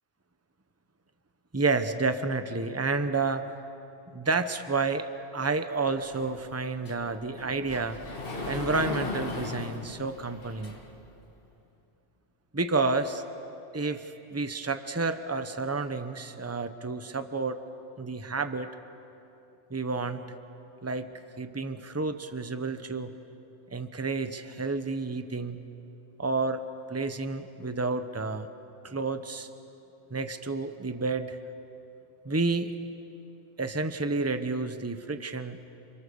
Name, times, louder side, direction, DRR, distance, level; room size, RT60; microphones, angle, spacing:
voice 1, 1.5-3.4 4.1-5.1 5.3-8.0 8.5-10.7 12.5-13.2 13.7-17.6 18.0-18.7 19.7-20.2 20.8-21.1 21.4-23.1 23.7-25.6 26.2-26.6 26.9-28.5 28.8-29.5 30.1-31.4 32.2-32.7 33.6-35.6, right 3 dB, 15° right, 9 dB, 1.0 m, -30 dB
Sliding door, 6.1-11.1, left 3 dB, 55° left, 2.1 m, -38 dB
30.0 x 28.0 x 7.1 m, 2.8 s
omnidirectional pair, 1.1 m